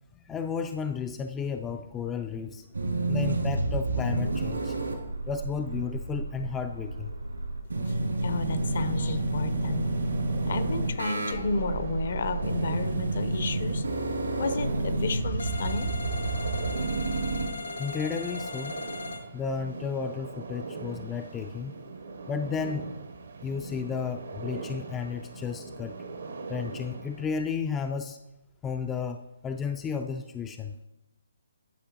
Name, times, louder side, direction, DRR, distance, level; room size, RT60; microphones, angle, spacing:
voice 1, 0.1-2.7 3.1-4.8 5.3-7.1 17.8-18.8 19.3-21.8 22.3-22.9 23.4-26.0 26.5-28.2 28.6-30.8, left 6 dB, 15° left, 6 dB, 0.3 m, -33 dB
sound 1, 2.7-17.5, right 2 dB, 80° right, 2.1 m, -30 dB
voice 2, 8.2-9.9 10.5-13.9 14.3-16.2, left 4 dB, 55° left, 11 dB, 0.7 m, -32 dB
sound 2, 8.4-27.3, right 4 dB, 65° right, 0.8 m, -41 dB
sound 3, 15.4-19.2, left 4 dB, 75° left, 1.2 m, -38 dB
11.5 x 5.6 x 2.8 m, 0.93 s
figure-of-eight pair, 140°, 0 cm